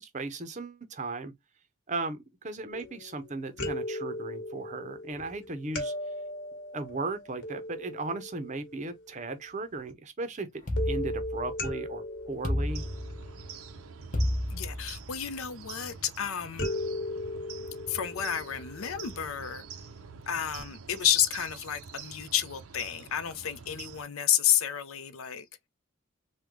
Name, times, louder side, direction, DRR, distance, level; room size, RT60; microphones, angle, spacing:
voice 1, 0.0-1.3 1.9-5.9 6.7-10.5 10.9-12.8, right 3 dB, 35° right, 0.5 m, -36 dB
sound 1, 2.7-3.2 3.6-9.2 10.8-14.0 16.6-19.8 20.6-20.7 21.0-21.1, left 1 dB, 60° left, 1.2 m, -38 dB
sound 2, 10.7-11.8 12.4-13.5 14.1-15.2, left 1 dB, 35° left, 0.8 m, -31 dB
sound 3, 12.7-24.0, right 6 dB, 85° right, 0.5 m, -46 dB
voice 2, 14.5-16.7 17.9-19.6 20.3-25.4, left 10 dB, 80° left, 0.5 m, -30 dB
3.6 x 2.2 x 3.0 m
head